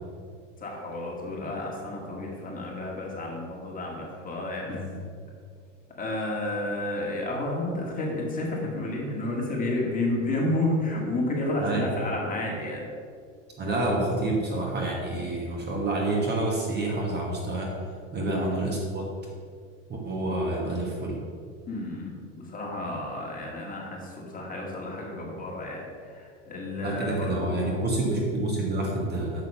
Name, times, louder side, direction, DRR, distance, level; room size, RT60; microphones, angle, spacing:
voice 1, 0.6-4.8 6.0-12.9 15.2-15.4 18.3-18.5 21.7-22.1 22.4-27.8, left 2 dB, 20° left, -2 dB, 2.1 m, -31 dB
voice 2, 4.7-5.0 11.6-11.9 13.6-17.7 18.1-19.1 19.9-21.2 26.8-29.4, right 2 dB, 25° right, -1 dB, 1.4 m, -28 dB
6.7 x 6.2 x 5.5 m, 2.1 s
supercardioid pair, 115°, 38 cm